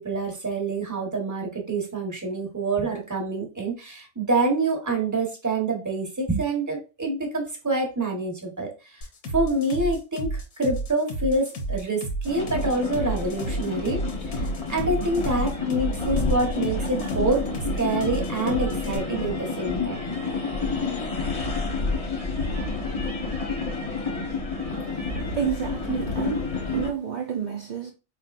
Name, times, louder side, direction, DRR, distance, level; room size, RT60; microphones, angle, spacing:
voice 1, 0.0-9.0 9.3-14.0 14.3-14.4 14.7-17.4 17.8-20.0, right 2 dB, 15° right, 1.0 m, -26 dB
sound 1, 9.0-19.0, right 2 dB, 85° left, 1.4 m, -31 dB
sound 2, 12.2-26.9, left 4 dB, 30° left, 0.9 m, -29 dB
voice 2, 25.3-27.9, right 7 dB, 55° right, 0.5 m, -30 dB
4.5 x 3.3 x 2.4 m
omnidirectional pair, 1.4 m